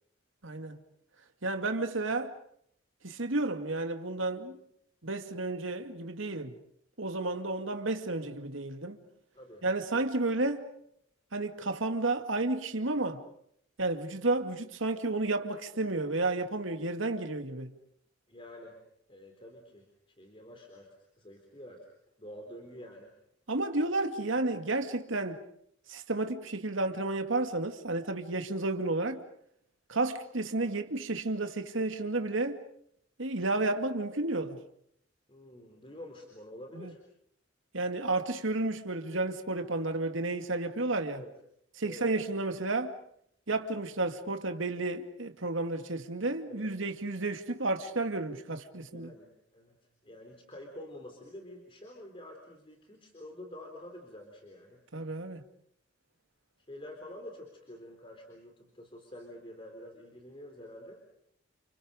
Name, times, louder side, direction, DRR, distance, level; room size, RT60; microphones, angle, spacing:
voice 1, 0.4-0.8 1.4-2.3 3.0-4.6 5.0-6.5 7.0-9.0 9.6-10.7 11.3-13.2 13.8-17.7 23.5-25.4 25.9-29.2 29.9-32.6 33.2-34.6 36.8-36.9 37.7-41.2 41.8-42.9 43.5-49.1 54.9-55.4, right 2 dB, 80° right, 2.3 m, -32 dB
voice 2, 9.3-9.7 18.3-18.8 19.1-19.9 20.2-21.9 22.2-23.1 35.3-37.0 41.1-41.3 41.8-42.0 46.5-46.7 48.9-54.8 56.7-61.0, left 1 dB, 25° left, 3.9 m, -48 dB
30.0 x 29.5 x 5.2 m
head